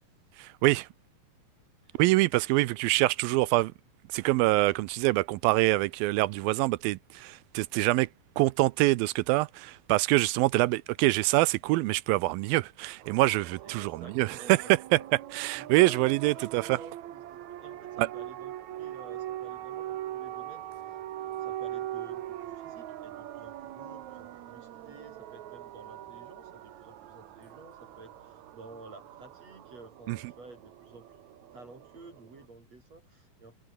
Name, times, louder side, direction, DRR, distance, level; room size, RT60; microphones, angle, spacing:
voice 1, 0.4-0.9 2.0-3.7 4.1-8.1 8.4-14.6 14.9-15.0 15.3-16.8 18.0-18.1 30.1-30.2, right 19 dB, 80° right, 2.3 m, -25 dB
sound 1, 13.0-32.4, right 13 dB, 65° right, 2.1 m, -42 dB
voice 2, 13.6-15.1 15.5-20.9 21.4-31.2 31.5-33.6, right 3 dB, 45° right, 6.3 m, -51 dB
omnidirectional pair, 4.3 m